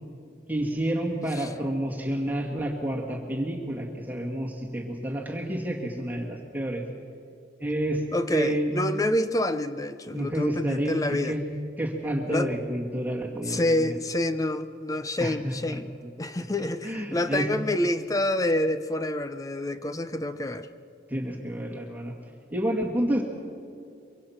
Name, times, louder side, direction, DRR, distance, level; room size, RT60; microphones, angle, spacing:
voice 1, 0.5-6.8 7.6-8.0 8.3-8.7 10.1-11.0 11.2-11.4 11.8-13.9 15.2-15.8 16.8-17.5 21.1-22.1 22.5-23.2, right 1 dB, 10° right, -1 dB, 2.1 m, -29 dB
voice 2, 8.1-11.4 12.3-12.5 13.5-15.9 16.2-20.7, left 1 dB, 20° left, 10 dB, 0.6 m, -27 dB
24.0 x 24.0 x 5.9 m, 2.4 s
head